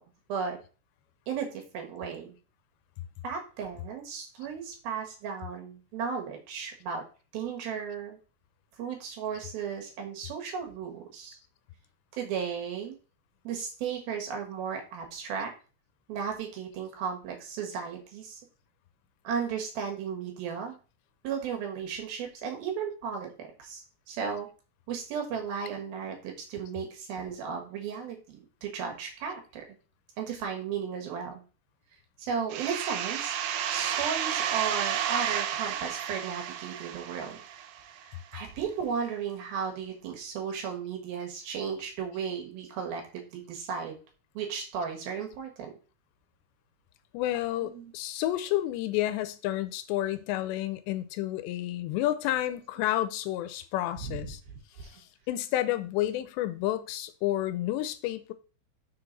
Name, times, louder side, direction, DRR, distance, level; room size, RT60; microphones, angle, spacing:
voice 1, 1.3-2.3 3.2-7.0 7.3-8.2 8.8-11.4 12.1-13.0 13.4-15.5 16.1-18.4 19.2-20.8 21.2-23.8 24.1-24.5 24.9-29.6 30.2-31.4 32.2-33.4 33.7-37.4 38.0-44.0 44.3-45.7 47.6-47.9 54.0-54.3 54.8-54.9, right 6 dB, 65° right, 3.2 m, -35 dB
sound 1, 32.5-38.0, right 9 dB, 85° right, 2.0 m, -32 dB
voice 2, 47.1-54.4 54.8-58.3, left 14 dB, 90° left, 2.9 m, -30 dB
6.7 x 5.8 x 4.0 m
omnidirectional pair, 4.9 m